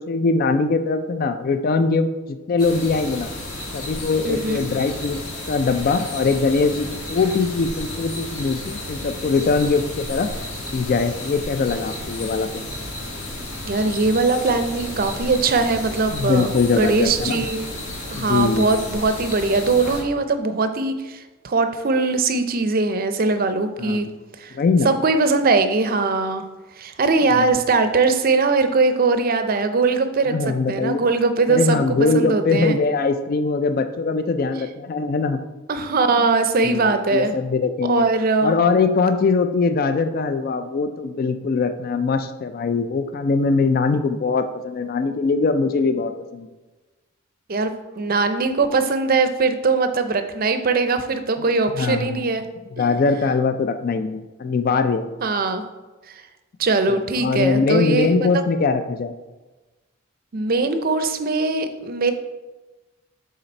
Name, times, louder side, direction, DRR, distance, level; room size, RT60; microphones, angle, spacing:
voice 1, 0.0-3.3 3.7-5.2 5.5-10.3 10.7-12.7 16.1-17.4 18.1-18.7 23.8-24.1 24.5-24.9 27.3-27.5 30.3-31.0 31.5-35.4 36.6-38.1 38.4-46.5 51.7-52.3 52.8-55.1 56.9-59.1, left 4 dB, 45° left, 9 dB, 0.3 m, -22 dB
sound 1, 2.6-20.0, left 1 dB, 80° left, 1.7 m, -32 dB
voice 2, 4.2-4.6 13.7-17.8 18.1-24.1 24.4-24.6 24.8-26.4 26.8-31.8 32.1-32.8 35.7-37.3 37.8-38.6 47.5-52.4 55.2-55.6 56.1-56.2 56.6-58.1 60.3-62.1, right 3 dB, 45° right, 9 dB, 0.5 m, -21 dB
6.6 x 4.0 x 4.3 m, 1.2 s
head